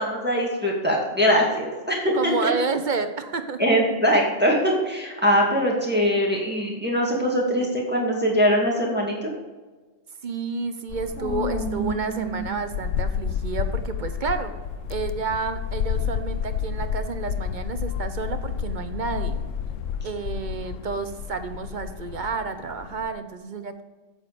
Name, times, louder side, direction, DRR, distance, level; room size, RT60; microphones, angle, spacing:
voice 1, 0.0-2.5 3.6-9.3 11.2-12.5, equal, 10° right, -2 dB, 2.1 m, -22 dB
voice 2, 2.1-3.7 10.2-14.5 14.9-19.4 20.0-23.8, right 4 dB, 45° right, 9 dB, 0.8 m, -30 dB
sound 1, 10.9-23.1, left 7 dB, 80° left, 1.0 m, -31 dB
8.5 x 8.0 x 5.2 m, 1.3 s
omnidirectional pair, 1.3 m